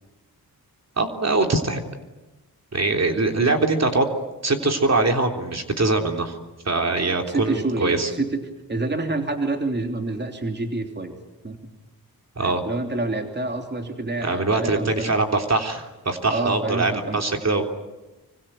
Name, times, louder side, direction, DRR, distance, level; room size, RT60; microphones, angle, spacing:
voice 1, 1.0-1.8 2.7-4.1 4.4-6.4 6.7-8.1 12.4-12.6 14.2-17.7, right 3 dB, 45° right, 4 dB, 3.5 m, -22 dB
voice 2, 7.3-8.4 8.7-11.2 11.4-11.6 12.4-15.1 16.3-17.2, right 2 dB, 30° right, 4 dB, 3.2 m, -27 dB
26.0 x 24.5 x 9.1 m, 1.1 s
cardioid pair, 70°, 37 cm